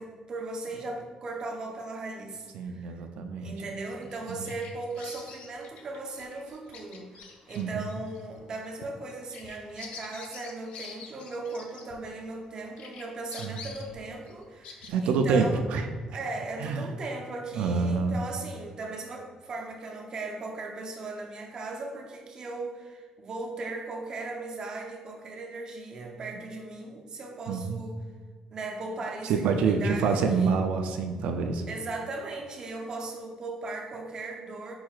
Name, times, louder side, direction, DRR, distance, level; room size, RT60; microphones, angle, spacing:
voice 1, 0.0-3.0 3.4-15.6 16.1-28.0 28.5-30.6 31.7-34.7, right 3 dB, 35° right, 1 dB, 0.6 m, -38 dB
voice 2, 2.5-3.6 4.4-4.5 7.6-7.9 13.4-13.6 14.9-15.9 16.6-16.9 17.6-18.2 27.5-27.8 29.2-31.6, right 5 dB, 90° right, 5 dB, 0.3 m, -27 dB
Bird vocalization bird call bird song, 4.0-12.4 12.8-14.9, left 5 dB, 85° left, 0.5 m, -47 dB
4.7 x 4.4 x 2.4 m, 1.5 s
cardioid pair, 160°, 2 cm